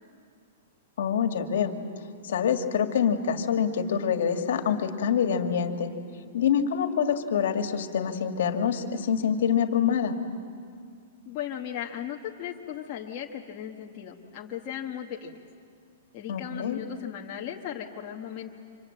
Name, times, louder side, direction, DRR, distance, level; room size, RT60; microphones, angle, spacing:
voice 1, 1.0-1.7 2.2-5.9 6.3-10.2 16.3-16.8, left 7 dB, 60° left, 6 dB, 1.9 m, -26 dB
voice 2, 11.2-15.4 16.1-18.5, left 9 dB, 25° left, -2 dB, 1.2 m, -37 dB
29.0 x 26.0 x 7.7 m, 2.2 s
hypercardioid pair, 180°, 0 cm